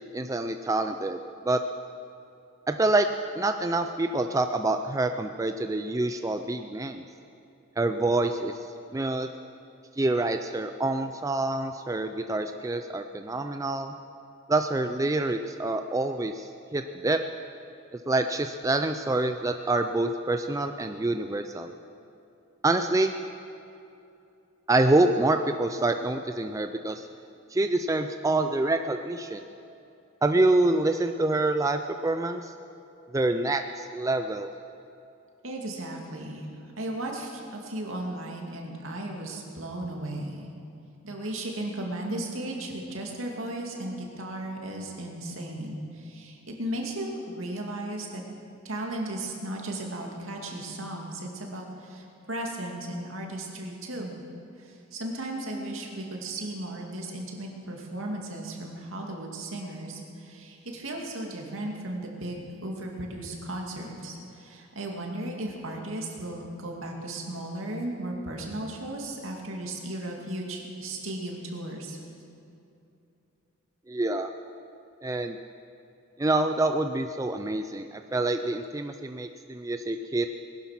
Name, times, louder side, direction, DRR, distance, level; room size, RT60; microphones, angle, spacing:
voice 1, 0.1-1.2 1.4-1.6 2.7-3.1 3.4-7.0 7.8-8.5 8.9-9.3 10.0-13.9 14.5-17.2 18.1-21.7 22.6-23.1 24.7-27.1 27.5-29.4 30.2-32.5 33.1-34.5 73.9-74.3 75.0-75.4 76.2-80.3, right 2 dB, 15° right, 7 dB, 0.4 m, -26 dB
voice 2, 35.4-36.5 36.8-40.5 41.0-48.2 48.6-54.2 54.6-72.0, right 1 dB, 70° right, 0 dB, 2.5 m, -35 dB
20.0 x 11.5 x 5.9 m, 2.7 s
head